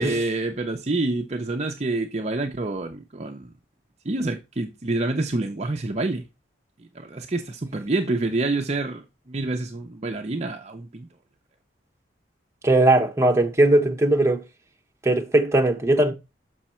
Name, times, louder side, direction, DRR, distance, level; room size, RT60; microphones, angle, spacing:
voice 1, 0.0-3.5 4.0-6.2 6.9-11.1, right 2 dB, 35° right, 0.6 m, -27 dB
voice 2, 12.6-14.4 15.0-16.1, right 1 dB, 15° right, 0.9 m, -19 dB
6.2 x 6.0 x 4.3 m
head